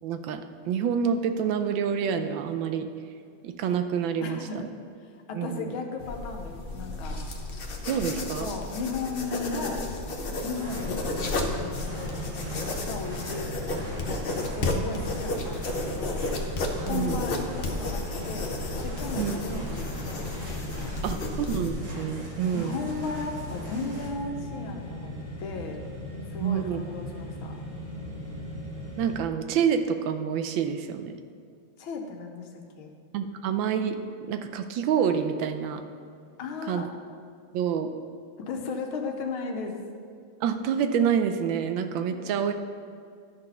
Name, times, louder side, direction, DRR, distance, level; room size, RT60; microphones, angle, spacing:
voice 1, 0.0-2.9 3.4-4.7 5.3-5.8 7.9-8.5 14.7-14.8 16.9-17.2 19.2-19.3 21.0-22.8 26.4-26.8 29.0-31.1 33.1-34.0 34.3-35.8 36.7-36.8 37.5-37.9 40.4-42.5, right 7 dB, 80° right, 8 dB, 1.3 m, -27 dB
voice 2, 4.2-4.7 5.0-7.2 8.4-9.9 10.4-13.5 13.8-16.2 16.8-18.6 18.8-20.3 20.7-21.2 22.5-25.8 26.3-27.6 31.8-32.9 36.4-36.9 38.4-39.8 42.1-42.4, left 4 dB, 90° left, 3 dB, 1.7 m, -36 dB
sound 1, 6.0-21.7, left 2 dB, 60° left, 0.5 m, -33 dB
sound 2, 10.6-29.2, equal, 20° right, 1.1 m, -38 dB
sound 3, 10.6-24.1, equal, 60° right, 2.6 m, -43 dB
12.0 x 4.2 x 5.5 m, 2.2 s
omnidirectional pair, 2.2 m